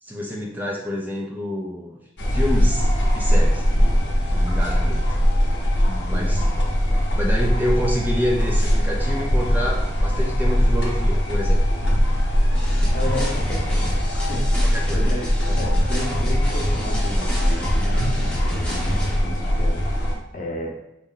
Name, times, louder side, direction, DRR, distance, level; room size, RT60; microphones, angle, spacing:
voice 1, 0.0-2.0 2.3-2.9 3.1-5.2 6.1-6.4 7.1-11.6 14.7-15.1, equal, 10° right, -2 dB, 0.4 m, -28 dB
sound 1, 2.2-20.1, equal, 85° left, 0.8 m, -21 dB
voice 2, 5.8-6.4 12.9-15.3 15.5-20.1 20.3-20.7, left 1 dB, 45° left, -1 dB, 0.7 m, -33 dB
sound 2, 12.5-19.2, equal, 5° left, 0.8 m, -30 dB
4.1 x 2.1 x 3.8 m, 0.87 s
head